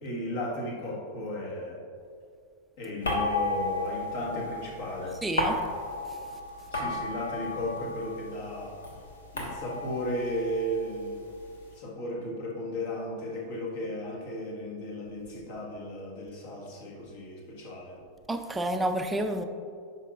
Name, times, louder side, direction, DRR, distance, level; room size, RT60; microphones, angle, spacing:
voice 1, 0.0-1.8 2.8-5.2 6.7-8.8 9.3-11.2 11.7-18.0, left 1 dB, 50° left, -2 dB, 1.6 m, -35 dB
sound 1, 3.0-8.3 8.6-11.5, left 2 dB, 70° left, 1.2 m, -33 dB
voice 2, 5.2-5.6 18.3-19.4, right 1 dB, 10° right, 6 dB, 0.5 m, -29 dB
9.8 x 5.8 x 2.5 m, 2.4 s
figure-of-eight pair, 90°, 0 cm